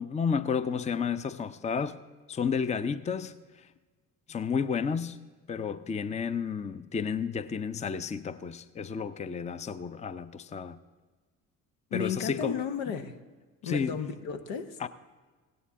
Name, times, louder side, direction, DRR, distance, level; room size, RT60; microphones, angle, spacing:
voice 1, 0.0-2.0 2.3-3.7 4.3-5.2 5.5-10.8 11.9-12.6 13.6-14.0 14.8-14.9, left 6 dB, 15° left, 0.5 m, -31 dB
voice 2, 11.9-13.1 13.6-14.8, left 7 dB, 80° left, 0.9 m, -33 dB
16.5 x 9.7 x 3.7 m
hypercardioid pair, 55°, 42 cm